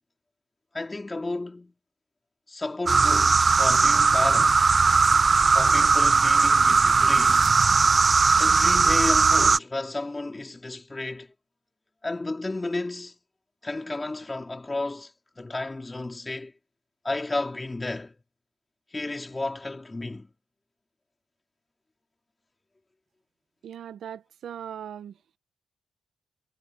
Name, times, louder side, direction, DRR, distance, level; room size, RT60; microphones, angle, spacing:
voice 1, 0.7-1.7 2.5-4.6 5.5-7.5 8.4-11.3 12.0-13.1 13.6-15.1 15.4-16.5 17.0-18.2 18.9-20.3, left 2 dB, 20° left, 3.9 m, -32 dB
sound 1, 2.9-9.6, right 4 dB, 35° right, 0.8 m, -19 dB
voice 2, 23.6-25.2, right 9 dB, 80° right, 1.0 m, -39 dB
cardioid pair, 100°, 0 cm